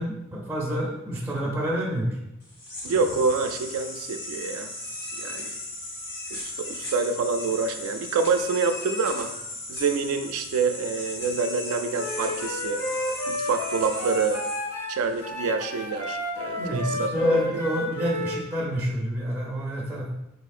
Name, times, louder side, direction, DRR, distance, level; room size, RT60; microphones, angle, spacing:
voice 1, 0.0-2.2 16.5-20.1, equal, 10° right, -6 dB, 0.5 m, -28 dB
sound 1, 2.4-15.2, left 1 dB, 50° left, 1.1 m, -37 dB
voice 2, 2.8-4.8 5.2-5.6 6.3-9.3 9.7-12.8 13.3-14.4 14.9-17.1, right 4 dB, 90° right, 7 dB, 0.3 m, -27 dB
Wind instrument woodwind instrument, 11.9-14.9 15.2-18.4, left 1 dB, 80° left, 0.8 m, -31 dB
4.0 x 2.8 x 2.4 m, 0.86 s
head